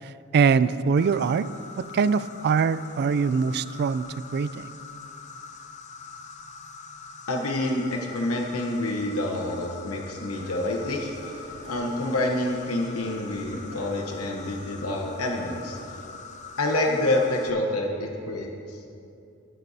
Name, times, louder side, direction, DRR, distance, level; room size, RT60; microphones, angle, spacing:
voice 1, 0.0-1.5 1.8-4.7, right 5 dB, 50° right, 15 dB, 0.3 m, -23 dB
Insect, 1.0-17.5, left 5 dB, 35° left, 0.6 m, -43 dB
voice 2, 7.3-11.3 11.7-15.8 16.6-18.8, left 1 dB, 75° left, 1 dB, 1.0 m, -27 dB
sound 1, 10.3-16.1, equal, 75° right, 1.7 m, -46 dB
20.5 x 9.7 x 2.8 m, 2.6 s
head